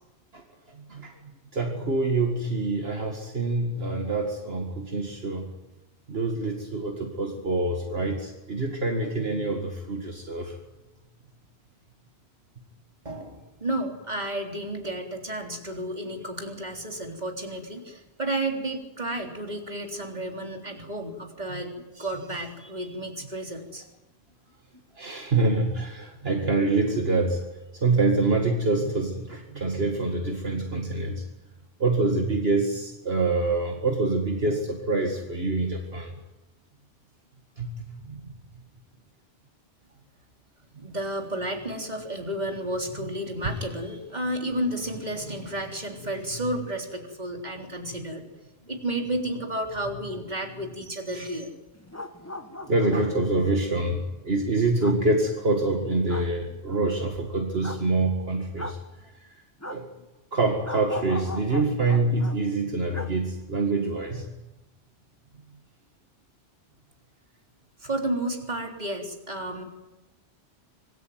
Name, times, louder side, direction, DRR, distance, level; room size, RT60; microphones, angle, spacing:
voice 1, 0.3-5.5 6.1-10.6 21.5-21.6 25.0-27.4 27.7-31.3 31.8-36.1 37.6-38.6 40.7-40.9 43.4-43.5 52.6-59.4 59.7-59.9 60.3-64.2, right 3 dB, 65° right, 3 dB, 2.3 m, -26 dB
voice 2, 13.0-23.9 40.8-48.2 48.7-51.5 67.8-69.6, right 1 dB, 40° right, 3 dB, 3.7 m, -32 dB
sound 1, 51.7-53.1 54.8-55.0 56.1-56.3 57.6-57.8 58.6-58.8 59.6-59.8 60.6-62.4 62.9-63.1 63.4-63.5, left 1 dB, 15° left, 1.4 m, -38 dB
25.5 x 20.0 x 9.5 m, 1.1 s
omnidirectional pair, 1.1 m